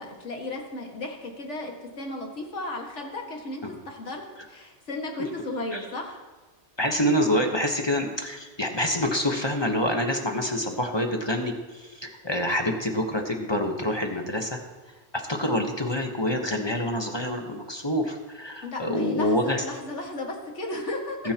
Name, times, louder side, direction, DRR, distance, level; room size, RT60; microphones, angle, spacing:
voice 1, 0.0-4.2 4.5-6.2 18.6-21.3, left 2 dB, 80° left, 1 dB, 2.2 m, -35 dB
voice 2, 6.8-14.6 15.1-19.6 21.2-21.3, left 1 dB, 25° left, 3 dB, 1.1 m, -26 dB
21.0 x 9.4 x 2.9 m, 1.3 s
omnidirectional pair, 1.2 m